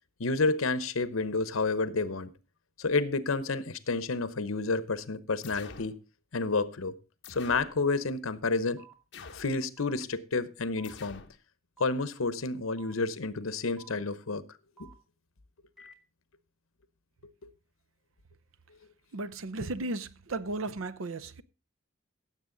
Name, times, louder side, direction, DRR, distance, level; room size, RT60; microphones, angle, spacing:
voice 1, 0.2-2.3 2.8-6.0 6.3-6.9 7.3-8.8 9.3-11.2 11.8-14.4 17.4-17.5 19.6-19.7, left 3 dB, 85° left, 0.9 m, -30 dB
sound 1, 5.4-6.0 7.2-7.8 9.1-9.6 10.8-11.4, left 5 dB, 60° left, 1.0 m, -47 dB
sound 2, 7.8-7.9 8.8-8.9 9.8-9.9 10.8-10.9 11.8-11.9 12.8-12.9 13.8-13.9 14.8-14.9 15.8-15.9, right 6 dB, 5° right, 2.4 m, -53 dB
voice 2, 19.1-21.4, right 2 dB, 75° right, 0.7 m, -35 dB
15.5 x 7.5 x 3.9 m
head